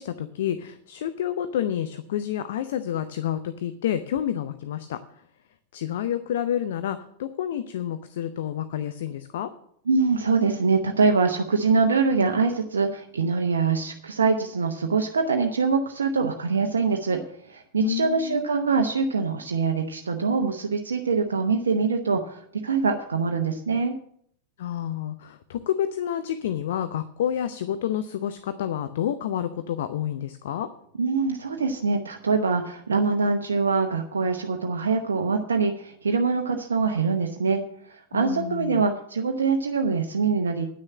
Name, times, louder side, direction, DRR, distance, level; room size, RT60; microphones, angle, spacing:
voice 1, 0.0-5.0 5.7-9.5 17.8-18.4 24.6-30.7 38.1-38.8, left 10 dB, 60° left, 11 dB, 0.6 m, -29 dB
voice 2, 9.9-17.2 17.5-23.9 31.0-37.6 37.9-40.7, right 4 dB, 75° right, 4 dB, 0.8 m, -24 dB
9.9 x 6.4 x 7.3 m, 0.66 s
figure-of-eight pair, 90°, 0 cm